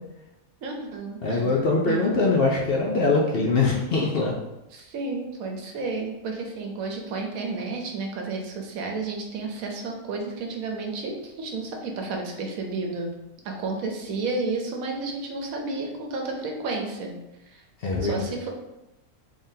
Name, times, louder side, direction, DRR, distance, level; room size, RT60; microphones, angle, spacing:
voice 1, 0.6-1.5 1.9-2.2 4.7-13.1 13.4-17.1 17.5-17.6 18.0-18.5, right 3 dB, 85° right, 2 dB, 1.2 m, -31 dB
voice 2, 1.2-4.3 17.8-18.2, left 3 dB, 60° left, -2 dB, 0.7 m, -22 dB
3.7 x 3.6 x 2.7 m, 0.97 s
omnidirectional pair, 1.4 m